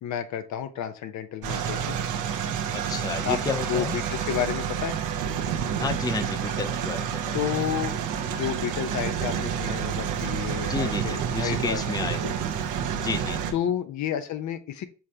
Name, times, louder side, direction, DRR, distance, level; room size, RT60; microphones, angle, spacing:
voice 1, 0.0-2.0 3.2-3.4 3.7-5.0 7.3-7.9 8.2-11.9 12.2-12.4 13.5-14.9, left 9 dB, 70° left, 10 dB, 0.7 m, -31 dB
sound 1, 1.4-13.5, right 8 dB, 85° right, 0.7 m, -29 dB
voice 2, 2.7-4.0 5.8-7.4 10.6-12.4 13.0-13.4, left 4 dB, 15° left, 9 dB, 0.4 m, -31 dB
5.6 x 3.3 x 2.8 m, 0.36 s
cardioid pair, 90°, 30 cm